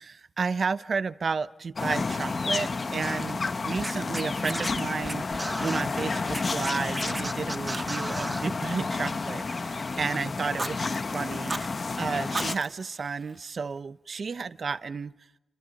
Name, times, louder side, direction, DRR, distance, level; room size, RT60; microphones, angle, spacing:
voice 1, 0.0-5.3 5.6-15.1, right 5 dB, 60° right, 13 dB, 1.0 m, -32 dB
sound 1, 1.8-12.6, left 3 dB, 50° left, 1.2 m, -31 dB
Scratching (performance technique), 3.8-5.8 6.3-8.5, right 1 dB, 15° right, 1.3 m, -35 dB
Fire, 4.7-5.8 6.0-7.3 7.7-8.2 8.5-9.9 10.4-10.8 11.3-11.7 12.2-13.8, right 3 dB, 35° right, 2.4 m, -39 dB
29.5 x 26.5 x 5.4 m, 0.94 s
wide cardioid pair, 95°, 0 cm